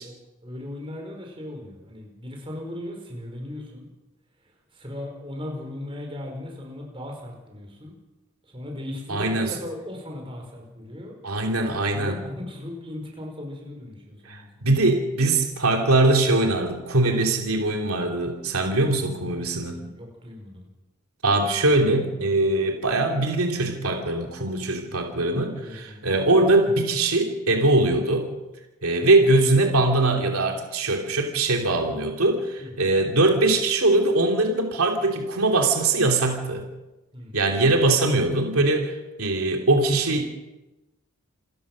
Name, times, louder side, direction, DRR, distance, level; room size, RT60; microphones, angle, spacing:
voice 1, 0.0-3.9 4.7-8.0 8.4-11.1 11.9-14.8 19.2-20.7 25.5-26.0 32.6-33.0 37.1-37.5, left 1 dB, 25° right, 1 dB, 5.3 m, -38 dB
voice 2, 9.1-9.5 11.2-12.2 14.2-19.8 21.2-28.3 28.8-36.6 37.3-40.3, right 2 dB, 80° right, 2 dB, 2.9 m, -22 dB
28.0 x 15.5 x 6.3 m, 1.1 s
head